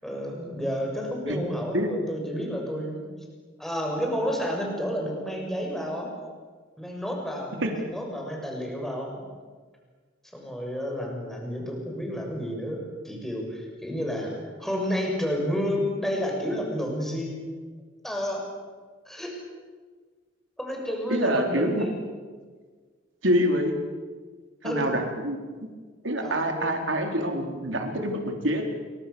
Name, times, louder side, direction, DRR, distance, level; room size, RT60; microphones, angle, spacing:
voice 1, 0.0-3.1 3.6-6.1 6.8-9.3 10.3-17.3 18.0-18.4 19.1-19.4 20.6-21.9 24.6-25.0 26.2-26.8, equal, ahead, 0 dB, 6.9 m, -31 dB
voice 2, 21.1-21.8 23.2-23.7 24.6-25.4 26.0-28.7, equal, 75° right, 3 dB, 4.2 m, -26 dB
29.0 x 24.0 x 7.2 m, 1.5 s
head